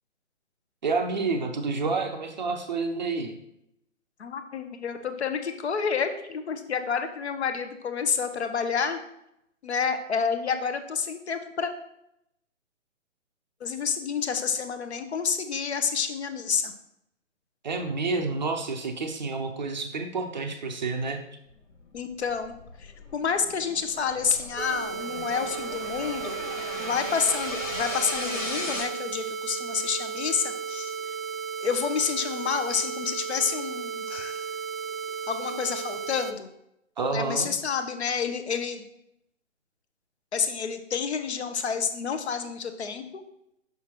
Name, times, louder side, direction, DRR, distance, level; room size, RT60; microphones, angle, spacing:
voice 1, 0.8-3.3 17.6-21.2 37.0-37.5, right 4 dB, 35° right, 5 dB, 0.5 m, -29 dB
voice 2, 4.2-9.0 9.6-11.7 13.6-16.7 21.9-22.5 22.8-26.4 26.8-30.9 31.6-34.4 35.3-36.5 37.1-38.8 40.3-43.2, left 6 dB, 55° left, 9 dB, 0.7 m, -29 dB
sound 1, 21.9-28.8, left 2 dB, 80° left, 1.8 m, -37 dB
sound 2, 24.6-36.3, right 6 dB, 80° right, 0.6 m, -34 dB
5.7 x 5.6 x 2.9 m, 0.79 s
figure-of-eight pair, 135°, 38 cm